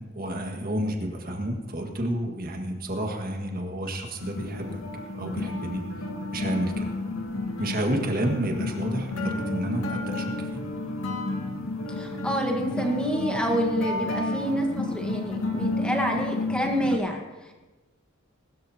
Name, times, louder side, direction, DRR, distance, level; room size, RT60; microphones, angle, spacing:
voice 1, 0.0-4.8 5.1-5.8 6.3-6.9 7.6-10.6, right 1 dB, 40° right, 2 dB, 1.8 m, -30 dB
sound 1, 4.2-17.0, left 2 dB, 90° left, 1.8 m, -31 dB
voice 2, 11.9-17.5, equal, 5° left, 1 dB, 1.4 m, -28 dB
21.0 x 13.0 x 2.9 m, 1.2 s
head